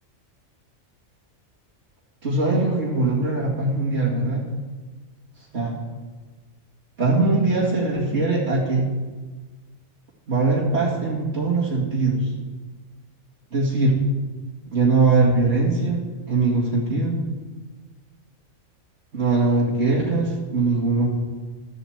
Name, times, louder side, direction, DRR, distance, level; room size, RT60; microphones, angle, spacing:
voice 1, 2.2-4.4 5.5-5.8 7.0-8.9 10.3-12.3 13.5-14.0 14.7-16.0 16.3-17.2 19.1-21.1, right 3 dB, 55° right, -7 dB, 2.5 m, -21 dB
13.5 x 8.1 x 8.0 m, 1.3 s
omnidirectional pair, 1.4 m